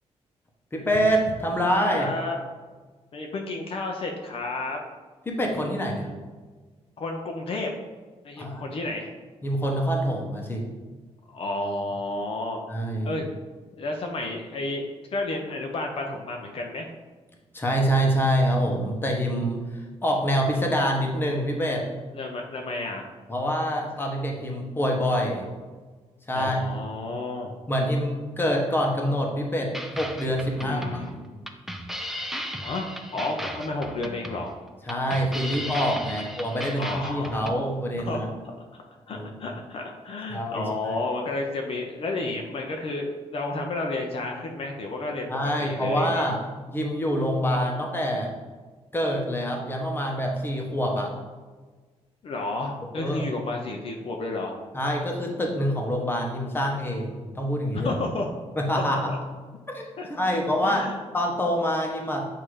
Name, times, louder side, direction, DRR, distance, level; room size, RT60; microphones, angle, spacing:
voice 1, 0.7-2.1 5.3-6.1 8.4-8.8 9.4-10.7 12.7-13.2 17.5-19.7 20.0-21.9 23.3-25.4 26.3-26.6 27.7-31.3 34.9-38.3 39.1-39.3 40.3-40.9 45.3-46.4 46.7-48.3 48.9-51.1 52.9-53.3 54.7-57.9 58.6-59.1 59.7-60.9 61.1-62.3, equal, 20° left, 0 dB, 1.1 m, -26 dB
voice 2, 1.9-2.3 3.1-4.8 7.0-7.7 8.2-9.1 11.3-12.6 13.0-13.2 13.8-16.9 22.1-23.1 26.3-27.6 30.6-31.1 32.6-34.5 36.1-36.3 36.7-37.4 38.1-38.2 39.1-46.3 52.2-54.5 57.7-58.3 58.9-59.2 60.0-60.3 60.6-61.0, left 2 dB, 55° left, 1 dB, 0.7 m, -31 dB
sound 1, 29.7-37.6, equal, ahead, 0.5 m, -36 dB
7.7 x 2.8 x 4.9 m, 1.4 s
cardioid pair, 125°, 11 cm